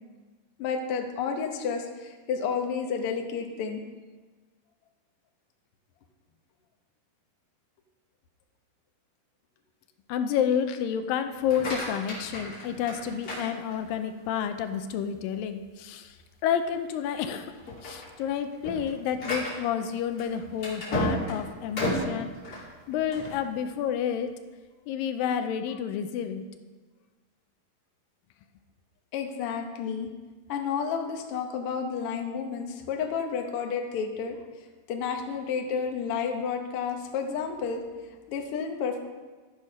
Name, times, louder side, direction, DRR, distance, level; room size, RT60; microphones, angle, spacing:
voice 1, 0.6-3.8 29.1-30.1 30.5-34.4 34.9-37.8 38.3-39.0, left 6 dB, 70° left, 3 dB, 1.3 m, -31 dB
voice 2, 10.1-16.2 16.4-22.3 22.9-24.3 24.9-26.4, left 8 dB, 85° left, 8 dB, 2.3 m, -30 dB
sound 1, 11.3-14.1 14.6-15.1 15.6-15.7 16.1-16.2 16.9-17.2 17.5-23.4, left 1 dB, 30° left, 3.0 m, -33 dB
12.5 x 6.3 x 5.5 m, 1.3 s
omnidirectional pair, 4.0 m